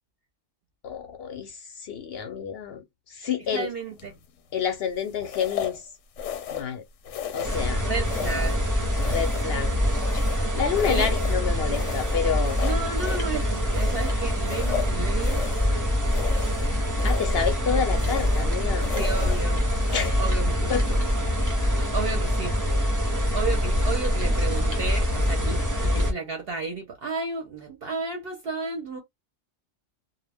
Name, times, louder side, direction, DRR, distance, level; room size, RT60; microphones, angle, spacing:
voice 1, 0.8-3.7 4.5-5.9 6.5-6.8 7.3-7.9 9.0-9.7 10.5-12.6 17.0-18.9 19.9-20.2 20.7-21.1, left 7 dB, 65° left, 0.7 m, -29 dB
voice 2, 3.5-4.1 7.8-8.6 10.9-11.1 12.6-15.6 18.9-19.7 20.2-20.8 21.9-22.6 23.3-29.0, right 4 dB, 60° right, 0.8 m, -32 dB
sound 1, 4.0-4.3 5.2-5.8 6.2-6.8 7.0-7.7 8.1-8.6 8.9-10.5 10.7-11.4 11.7-13.3 13.7-15.7 16.0-16.7 17.0-17.5 17.9-18.5 18.8-19.4 19.8-20.1, left 9 dB, 85° left, 0.9 m, -35 dB
sound 2, 7.4-26.1, left 1 dB, 20° right, 0.5 m, -24 dB
2.2 x 2.0 x 3.3 m
omnidirectional pair, 1.3 m